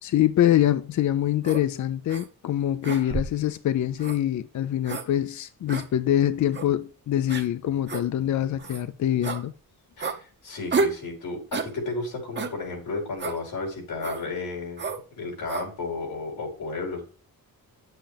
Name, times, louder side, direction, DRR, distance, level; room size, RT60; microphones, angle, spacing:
voice 1, 0.0-9.5, left 12 dB, 55° left, 0.5 m, -24 dB
sound 1, 1.4-1.6 2.1-2.3 2.8-3.4 4.0-4.2 4.8-5.1 5.7-5.9 6.5-6.7 7.3-7.5 7.9-8.0 8.6-8.8 9.2-9.4 10.0-10.2 10.7-11.0 11.5-11.7 12.4-12.6 13.2-13.4 14.0-14.2 14.8-15.0 15.5-15.7, right 4 dB, 30° right, 0.8 m, -30 dB
voice 2, 10.0-14.9 15.2-17.0, left 3 dB, 85° left, 5.0 m, -33 dB
10.0 x 7.8 x 3.4 m
wide cardioid pair, 150°, 36 cm